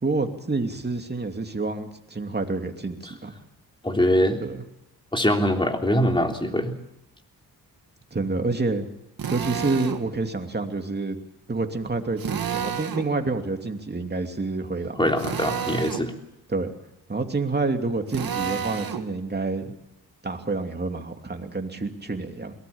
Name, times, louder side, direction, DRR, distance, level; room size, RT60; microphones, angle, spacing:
voice 1, 0.0-3.3 4.4-4.6 8.1-8.8 9.3-11.2 11.5-15.1 16.5-16.7 17.1-19.8 20.2-22.5, right 3 dB, 25° right, 4 dB, 2.8 m, -28 dB
voice 2, 3.8-4.4 5.1-6.7 15.0-16.1, equal, 15° left, 3 dB, 3.4 m, -22 dB
Drill, 9.2-10.0 12.2-13.1 15.2-16.1 18.1-19.1, right 8 dB, 65° right, 2.0 m, -30 dB
22.0 x 19.0 x 7.2 m, 0.85 s
cardioid pair, 75°, 38 cm